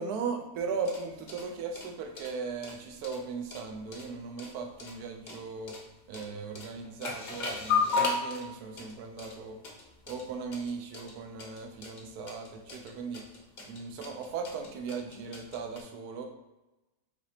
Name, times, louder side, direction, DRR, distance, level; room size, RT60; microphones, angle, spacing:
voice 1, 0.0-5.8 6.1-9.6 10.1-13.3 13.6-16.3, right 5 dB, 80° right, 4 dB, 1.1 m, -38 dB
sound 1, 0.6-15.8, left 4 dB, 50° left, 0.5 m, -36 dB
4.9 x 3.4 x 2.8 m, 1.0 s
omnidirectional pair, 1.7 m